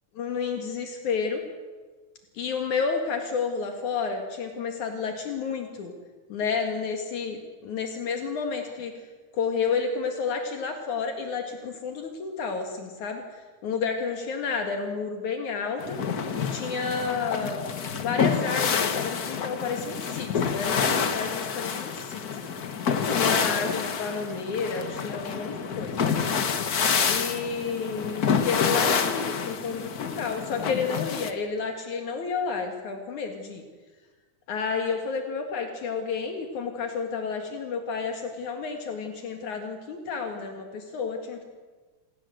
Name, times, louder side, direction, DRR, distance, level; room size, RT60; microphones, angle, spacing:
voice 1, 0.2-1.4 2.3-5.9 6.3-9.0 9.3-13.2 13.6-16.0 16.4-17.6 18.0-22.2 23.1-26.2 27.0-33.6 34.5-41.4, left 5 dB, 70° left, 4 dB, 3.3 m, -31 dB
sound 1, 15.8-31.3, left 6 dB, 55° left, 1.0 m, -28 dB
28.5 x 17.5 x 7.8 m, 1.4 s
omnidirectional pair, 3.5 m